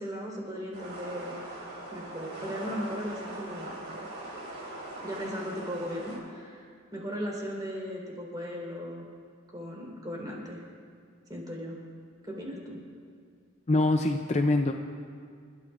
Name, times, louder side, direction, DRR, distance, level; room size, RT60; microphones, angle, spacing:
voice 1, 0.0-1.3 1.9-3.8 5.0-9.0 9.5-10.6 11.3-11.8 12.2-12.8, equal, 20° right, -3 dB, 4.1 m, -37 dB
sound 1, 0.7-6.2, right 1 dB, 55° right, 4.0 m, -41 dB
voice 2, 13.7-14.7, left 2 dB, 30° left, 5 dB, 0.5 m, -24 dB
29.0 x 13.5 x 2.6 m, 2.2 s
head